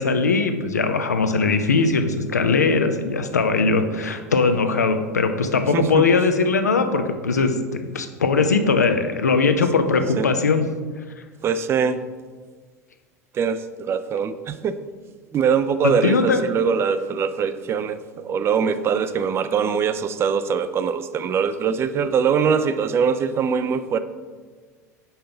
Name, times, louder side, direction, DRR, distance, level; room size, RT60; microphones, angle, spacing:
voice 1, 0.0-10.6 15.8-16.4, left 4 dB, 80° left, 7 dB, 0.5 m, -20 dB
voice 2, 5.7-6.1 10.2-10.3 11.4-12.0 13.3-14.7 15.3-24.0, right 6 dB, 30° right, 12 dB, 0.4 m, -22 dB
5.6 x 3.7 x 5.6 m, 1.5 s
figure-of-eight pair, 75°, 9 cm